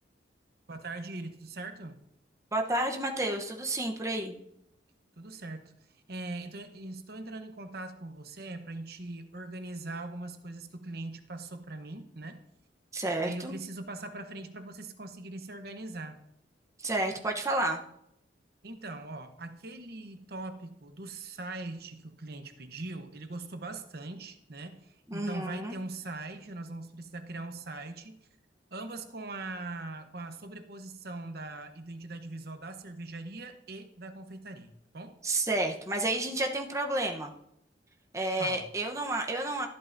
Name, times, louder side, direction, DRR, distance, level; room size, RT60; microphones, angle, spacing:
voice 1, 0.7-2.0 5.2-12.4 13.2-16.2 18.6-28.2 28.7-35.2 38.4-38.6, right 2 dB, 55° right, 7 dB, 0.9 m, -41 dB
voice 2, 2.5-4.3 12.9-13.6 16.8-17.8 25.1-25.8 35.2-37.3 38.1-39.7, right 2 dB, 15° right, 2 dB, 0.9 m, -30 dB
13.5 x 11.5 x 2.6 m, 0.78 s
head